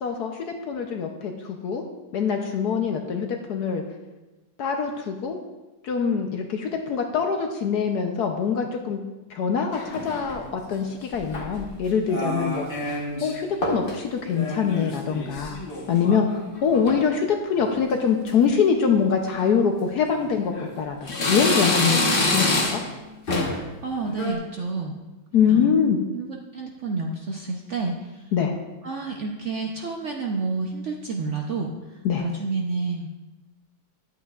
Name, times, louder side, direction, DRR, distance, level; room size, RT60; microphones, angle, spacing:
voice 1, 0.0-1.8 2.1-3.8 4.6-5.4 5.8-9.0 9.3-12.6 13.2-15.6 15.9-16.3 16.6-22.8 25.3-26.0 28.3-28.5 32.0-32.2, left 6 dB, 65° left, 3 dB, 1.1 m, -24 dB
sound 1, 9.7-10.4 11.1-11.7 12.1-13.3 13.6-14.0 14.3-16.3 16.6-17.0 17.6-17.9 18.3-18.4 19.3-19.4 20.1-20.7 21.1-23.0 23.3-23.7 24.0-24.3, left 2 dB, 35° left, 1.1 m, -27 dB
voice 2, 23.5-25.0 25.5-25.8 26.1-28.2 28.8-33.1, right 3 dB, 70° right, 1 dB, 0.7 m, -30 dB
11.0 x 8.2 x 2.4 m, 1.1 s
omnidirectional pair, 2.1 m